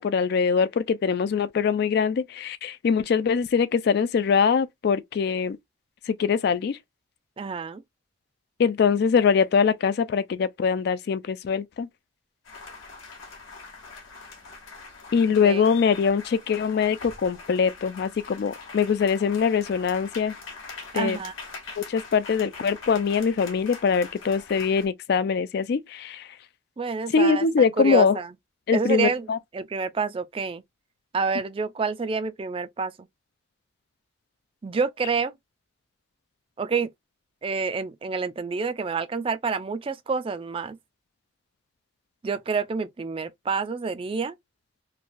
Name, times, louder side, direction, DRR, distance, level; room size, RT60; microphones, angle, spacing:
voice 1, 0.0-5.6 6.1-6.8 8.6-11.9 15.1-20.3 20.9-21.2 21.8-26.3 27.1-28.2 28.7-29.4, left 6 dB, 55° left, 0.3 m, -23 dB
voice 2, 7.4-7.8 15.4-15.6 20.9-21.3 26.8-27.5 27.8-28.3 28.7-29.3 29.5-30.6 31.1-33.1 34.6-35.4 36.6-36.9 37.4-40.8 42.2-44.3, right 5 dB, 25° right, 0.3 m, -28 dB
sound 1, 12.4-24.9, left 4 dB, 80° left, 1.0 m, -43 dB
3.1 x 2.2 x 2.5 m
head